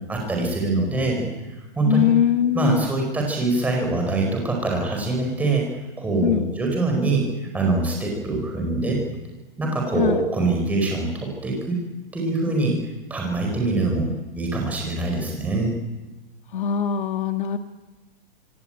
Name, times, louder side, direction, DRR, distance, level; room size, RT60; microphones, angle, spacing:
voice 1, 0.1-1.3 1.5-2.1 2.5-5.7 6.0-7.2 7.5-9.0 9.6-11.8 12.1-12.8 13.1-15.7, right 2 dB, 5° right, 0 dB, 4.7 m, -24 dB
voice 2, 1.8-2.9 6.2-6.5 9.9-10.2 16.5-17.6, left 9 dB, 60° left, 7 dB, 1.7 m, -22 dB
26.0 x 24.5 x 8.9 m, 1.1 s
hypercardioid pair, 175°, 29 cm